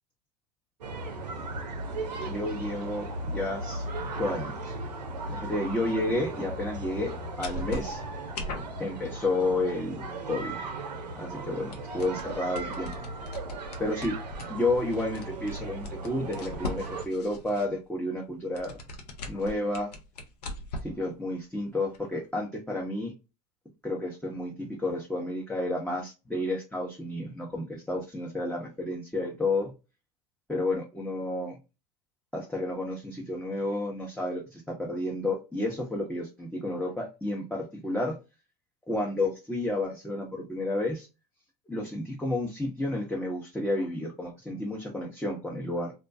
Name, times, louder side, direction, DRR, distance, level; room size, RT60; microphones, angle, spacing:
sound 1, 0.8-17.0, right 2 dB, 85° right, 0.5 m, -37 dB
voice 1, 2.2-3.8 4.2-4.7 5.3-8.0 8.8-10.5 11.2-12.9 13.8-14.2 14.5-18.8 19.3-19.9 20.8-23.1 23.8-29.7 30.5-31.6 32.3-38.1 38.9-41.1 41.7-45.9, left 2 dB, 5° left, -3 dB, 0.6 m, -31 dB
sound 2, 7.1-7.2 7.4-8.8 11.7-17.7 18.4-21.0 21.4-21.5 21.9-22.0, left 2 dB, 75° left, 0.6 m, -39 dB
2.3 x 2.1 x 2.5 m, 0.28 s
hypercardioid pair, 80°, 21 cm